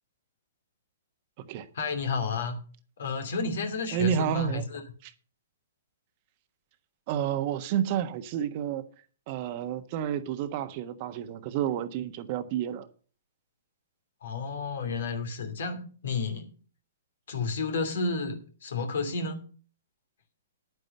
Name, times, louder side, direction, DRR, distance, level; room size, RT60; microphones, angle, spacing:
voice 1, 1.7-2.6 3.0-4.8 14.2-16.5 17.3-19.4, left 4 dB, 65° left, 2.7 m, -31 dB
voice 2, 3.9-4.7 5.0-5.1 7.1-8.8 9.3-12.9, right 9 dB, 40° right, 1.3 m, -30 dB
10.5 x 9.4 x 5.5 m
figure-of-eight pair, 120°, 0 cm